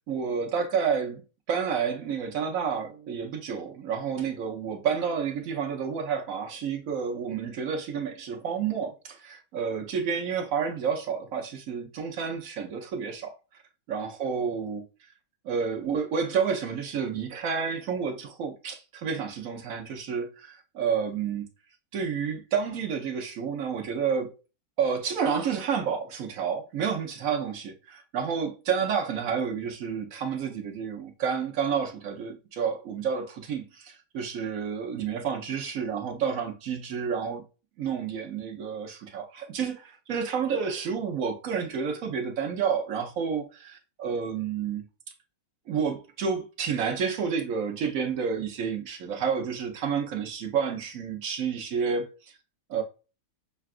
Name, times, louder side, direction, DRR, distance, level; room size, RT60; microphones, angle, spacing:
voice 1, 0.1-1.2 1.5-13.3 13.9-14.8 15.4-21.5 21.9-24.3 24.8-37.4 37.8-44.8 45.7-52.3 52.7-52.8, right 6 dB, 60° right, 1.0 m, -30 dB
6.6 x 2.4 x 2.4 m
omnidirectional pair, 1.9 m